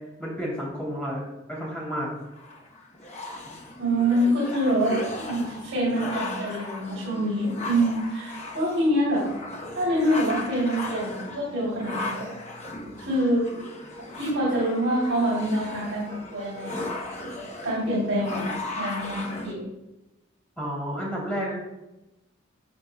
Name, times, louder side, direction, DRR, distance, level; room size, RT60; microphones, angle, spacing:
voice 1, 0.2-1.2 1.5-2.1 20.6-21.5, equal, 5° left, -5 dB, 2.9 m, -31 dB
sound 1, 2.3-19.5, left 2 dB, 35° left, 0.9 m, -37 dB
voice 2, 3.8-9.2 9.7-12.3 13.1-13.4 14.0-16.0 16.3-16.7 17.6-18.4 18.8-19.6, right 1 dB, 70° right, -6 dB, 2.9 m, -25 dB
13.0 x 6.3 x 2.2 m, 0.97 s
head